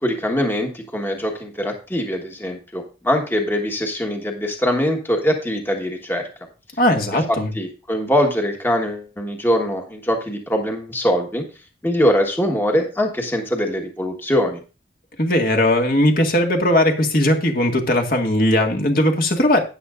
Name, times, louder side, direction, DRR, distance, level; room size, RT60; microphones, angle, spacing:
voice 1, 0.0-6.3 7.3-11.4 11.8-14.6, equal, 10° left, 2 dB, 1.3 m, -22 dB
voice 2, 6.8-7.5 15.2-19.6, left 1 dB, 50° left, 3 dB, 1.8 m, -18 dB
13.0 x 9.4 x 2.5 m, 0.33 s
head